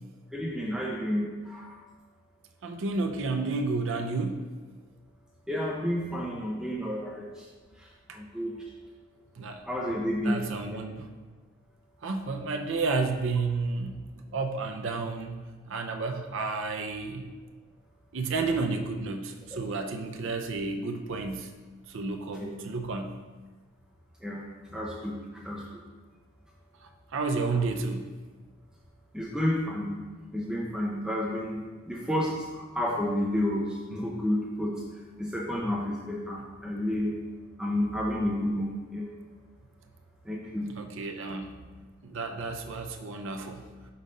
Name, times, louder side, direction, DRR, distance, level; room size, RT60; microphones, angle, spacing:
voice 1, 0.3-1.8 5.5-7.2 8.1-8.5 9.6-10.4 10.7-10.8 19.5-19.6 22.4-22.5 24.2-24.4 24.7-25.1 25.4-25.6 29.1-30.0 30.3-32.3 32.6-33.6 33.9-34.7 35.2-37.1 37.6-39.1 40.3-40.6, left 1 dB, 5° right, -3 dB, 0.6 m, -30 dB
voice 2, 2.6-4.5 8.1-8.2 9.4-9.6 10.2-11.1 12.0-14.0 14.3-17.3 18.1-21.5 21.9-23.2 26.8-28.1 40.7-41.6 42.0-43.6, right 3 dB, 60° right, 4 dB, 0.5 m, -31 dB
5.4 x 4.1 x 5.1 m, 1.3 s
head